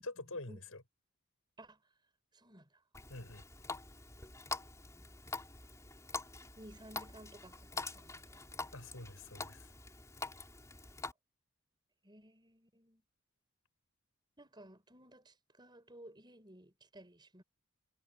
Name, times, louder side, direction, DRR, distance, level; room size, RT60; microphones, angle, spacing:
voice 1, 0.0-0.8 3.1-3.4 8.7-9.7, left 2 dB, 65° left, 7.3 m, -46 dB
voice 2, 2.3-2.7 4.9-5.1 6.6-8.7 12.0-13.0 14.4-17.4, right 1 dB, 20° right, 5.3 m, -56 dB
Water tap faucet, 2.9-11.1, left 3 dB, 15° left, 5.9 m, -45 dB
head